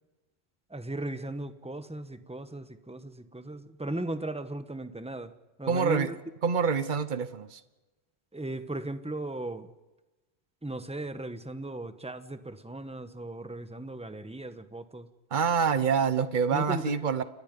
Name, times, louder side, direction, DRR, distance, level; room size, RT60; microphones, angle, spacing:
voice 1, 0.7-6.2 8.3-9.7 10.6-15.1 16.5-17.0, right 2 dB, 5° right, 10 dB, 1.2 m, -37 dB
voice 2, 5.7-6.1 6.4-7.6 15.3-17.2, right 6 dB, 45° right, 12 dB, 1.2 m, -26 dB
29.5 x 23.0 x 5.4 m, 1.1 s
omnidirectional pair, 1.1 m